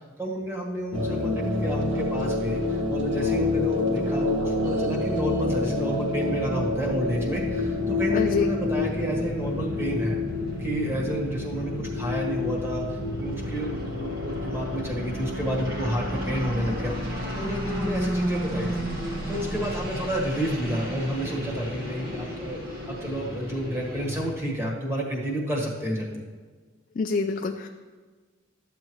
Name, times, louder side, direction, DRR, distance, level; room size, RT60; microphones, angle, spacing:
voice 1, 0.2-10.2 10.6-18.8 19.3-22.6 22.9-26.2, right 1 dB, 15° right, -2 dB, 1.5 m, -30 dB
sound 1, 0.9-17.3, left 3 dB, 80° right, 1.4 m, -29 dB
sound 2, 5.7-24.3, equal, 55° right, 1.6 m, -33 dB
voice 2, 8.1-8.4 27.0-27.7, left 4 dB, 45° left, 4 dB, 0.4 m, -26 dB
13.0 x 7.6 x 3.1 m, 1.4 s
head